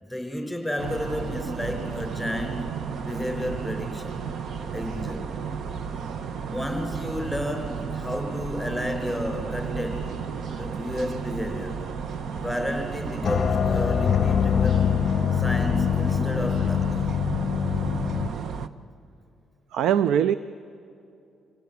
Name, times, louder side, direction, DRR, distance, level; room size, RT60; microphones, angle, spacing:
voice 1, 0.0-2.6 3.0-4.2 4.7-5.3 6.4-10.0 10.6-11.7 12.4-14.9 15.3-17.0, equal, ahead, 4 dB, 4.9 m, -31 dB
sound 1, 0.8-18.7, right 6 dB, 65° right, 0.9 m, -33 dB
voice 2, 6.0-6.5 19.7-20.3, right 9 dB, 80° right, 15 dB, 0.4 m, -24 dB
sound 2, 13.2-18.3, left 8 dB, 45° left, 0.6 m, -24 dB
26.0 x 17.0 x 8.3 m, 2.5 s
cardioid pair, 90°, 0 cm